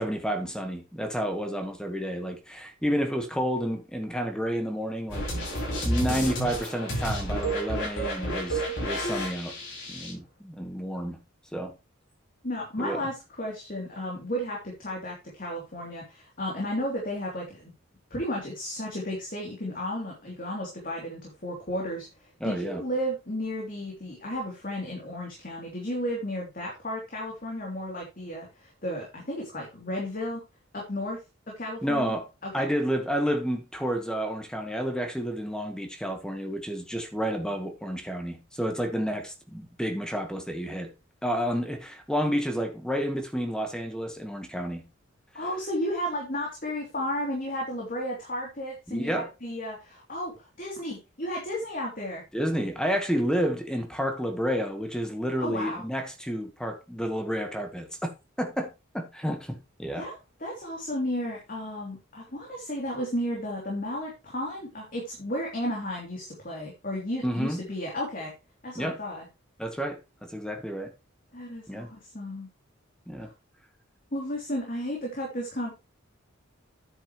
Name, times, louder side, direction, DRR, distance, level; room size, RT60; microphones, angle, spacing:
voice 1, 0.0-5.3 5.8-9.5 9.9-11.2 11.5-11.7 12.8-13.0 22.4-22.8 31.8-32.3 32.5-40.9 41.2-44.9 48.9-49.3 52.3-58.1 58.4-60.1 67.2-67.6 68.7-69.0 69.6-70.9 71.7-71.9 73.1-73.3, equal, 5° left, 1.4 m, -30 dB
sound 1, 5.1-10.1, right 1 dB, 60° left, 5.7 m, -30 dB
voice 2, 12.4-17.7 18.1-30.4 30.7-31.2 31.5-32.2 32.4-32.6 45.3-52.2 55.4-55.8 59.9-68.3 68.6-69.3 71.3-72.5 73.2-73.3 74.1-75.7, equal, 45° left, 3.1 m, -33 dB
9.8 x 8.2 x 3.1 m
head